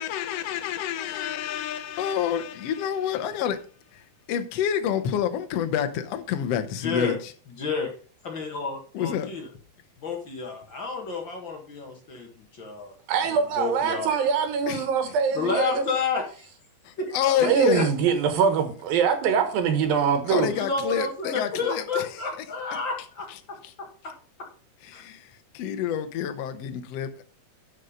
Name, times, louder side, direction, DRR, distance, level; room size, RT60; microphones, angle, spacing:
voice 1, 0.0-3.7 3.9-7.3 8.9-9.3 14.7-14.9 16.8-17.9 20.2-22.4 23.3-23.7 24.8-27.2, left 9 dB, 80° left, 1.4 m, -28 dB
voice 2, 6.8-7.2 7.6-7.9 8.2-9.4 10.0-12.9 13.3-14.2 15.3-16.5 17.0-17.1 17.4-17.8 20.5-23.3 24.0-24.1 24.9-25.0, left 4 dB, 45° left, 1.7 m, -30 dB
voice 3, 13.1-15.8 17.4-20.5, right 6 dB, 70° right, 3.0 m, -23 dB
11.5 x 5.3 x 5.2 m
omnidirectional pair, 4.4 m